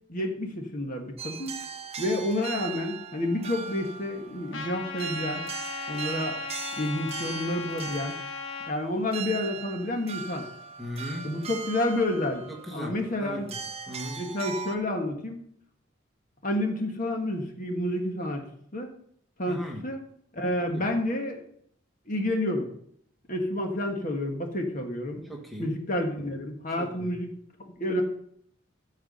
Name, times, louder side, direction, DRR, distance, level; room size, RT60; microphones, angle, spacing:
voice 1, 0.1-1.6 2.0-5.4 5.9-6.4 6.8-8.2 8.7-10.4 11.2-12.4 12.7-13.5 14.2-15.4 16.4-18.4 18.7-18.9 19.4-20.0 20.3-21.4 22.1-22.7 23.3-25.2 25.6-27.3 27.6-28.0, left 1 dB, 40° left, 3 dB, 1.6 m, -29 dB
sound 1, 1.2-14.8, right 7 dB, 30° right, 0.8 m, -39 dB
Trumpet, 4.5-8.7, left 6 dB, 70° left, 1.3 m, -37 dB
voice 2, 10.8-11.3 12.5-13.6 13.9-14.2 19.5-19.9 20.6-20.9 25.2-25.7 26.8-27.2, equal, ahead, 0 dB, 1.4 m, -38 dB
14.5 x 4.9 x 5.5 m, 0.65 s
head